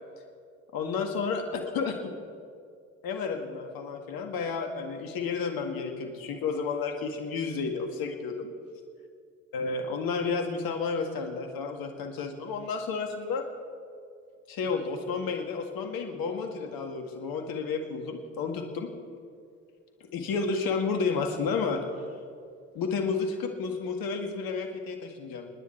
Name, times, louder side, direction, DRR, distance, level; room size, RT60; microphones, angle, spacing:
voice 1, 0.7-2.1 3.0-8.5 9.5-13.5 14.5-18.9 20.0-21.8 22.8-25.5, left 5 dB, 65° left, 5 dB, 1.9 m, -31 dB
28.0 x 9.9 x 4.5 m, 2.2 s
hypercardioid pair, 55°, 38 cm